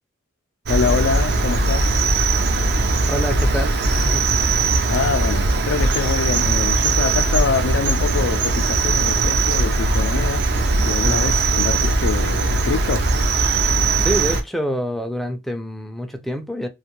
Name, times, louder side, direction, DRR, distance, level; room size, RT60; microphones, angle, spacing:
voice 1, 0.7-1.9 4.9-13.1, left 6 dB, 80° left, 0.3 m, -25 dB
Cricket, 0.7-14.4, right 3 dB, 60° right, 0.5 m, -19 dB
voice 2, 3.1-4.3 14.0-16.7, equal, ahead, 0.3 m, -26 dB
2.5 x 2.2 x 2.9 m
head